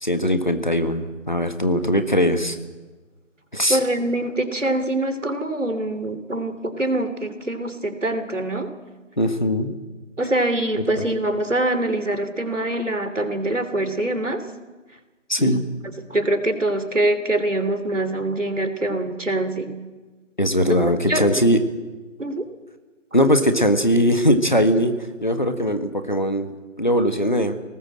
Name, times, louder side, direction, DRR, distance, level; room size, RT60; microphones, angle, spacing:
voice 1, 0.0-2.6 3.5-3.8 9.2-9.7 11.0-11.1 15.3-15.6 20.4-21.6 23.1-24.9 25.2-26.5 26.8-27.6, equal, 35° left, 8 dB, 1.6 m, -20 dB
voice 2, 3.7-8.7 10.2-14.4 15.4-15.6 16.1-19.8 21.1-21.3 22.2-22.4, right 1 dB, 70° right, 9 dB, 3.1 m, -24 dB
23.0 x 19.0 x 7.6 m, 1.3 s
figure-of-eight pair, 180°, 39 cm